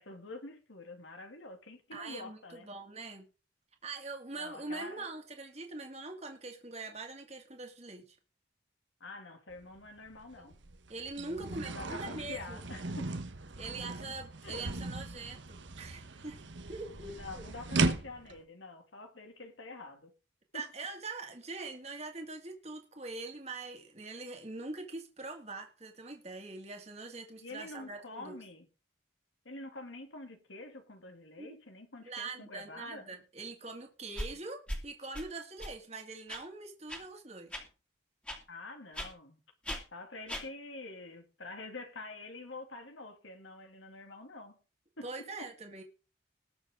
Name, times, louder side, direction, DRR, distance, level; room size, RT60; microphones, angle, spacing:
voice 1, 0.0-2.7 4.4-5.1 9.0-10.6 11.2-13.1 14.4-14.6 17.0-20.1 20.5-20.6 27.4-28.7 29.4-33.0 38.5-39.4 39.9-44.6 45.0-45.1, left 2 dB, 85° left, 2.6 m, -47 dB
voice 2, 1.9-3.3 3.8-8.2 10.4-10.5 10.9-12.6 13.6-16.4 16.7-17.4 20.5-28.4 31.4-31.5 32.0-37.6 45.0-45.8, right 3 dB, 35° right, 2.1 m, -43 dB
sound 1, 9.5-9.6 10.1-18.4, right 3 dB, 75° right, 1.2 m, -37 dB
sound 2, 34.2-34.3 34.7-34.8 35.1-35.2 35.6-35.7 36.3-36.4 36.9-37.0 37.5-37.6 38.3-38.4 38.9-39.1 39.7-39.8 40.3-40.4, equal, 5° left, 2.3 m, -37 dB
19.5 x 6.7 x 3.8 m
head